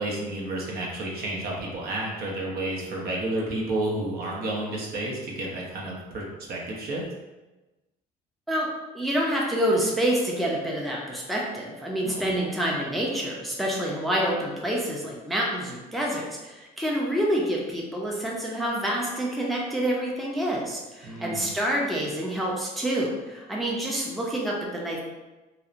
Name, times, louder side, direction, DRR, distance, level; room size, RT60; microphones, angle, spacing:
voice 1, 0.0-7.0 12.0-12.3 21.0-21.5, right 1 dB, 65° right, -3 dB, 0.7 m, -31 dB
voice 2, 8.9-25.0, equal, ahead, -3 dB, 0.4 m, -27 dB
2.7 x 2.1 x 2.4 m, 1.1 s
cardioid pair, 110°, 17 cm